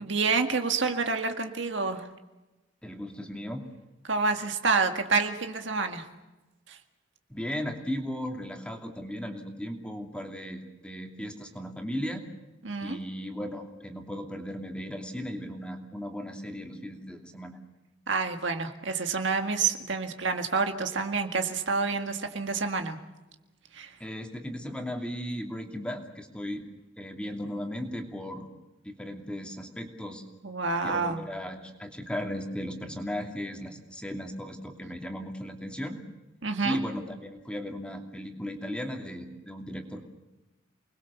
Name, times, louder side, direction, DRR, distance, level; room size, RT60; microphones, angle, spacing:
voice 1, 0.0-2.1 4.0-6.1 6.7-6.8 12.6-13.0 18.1-23.0 23.7-24.0 30.4-31.2 36.4-36.8, right 4 dB, 60° right, 5 dB, 1.9 m, -28 dB
voice 2, 2.8-3.7 7.3-12.2 12.8-17.6 24.0-26.6 27.0-28.5 28.8-30.2 30.8-36.0 36.6-40.0, equal, 5° left, 3 dB, 2.8 m, -36 dB
29.5 x 21.5 x 7.0 m, 1.1 s
head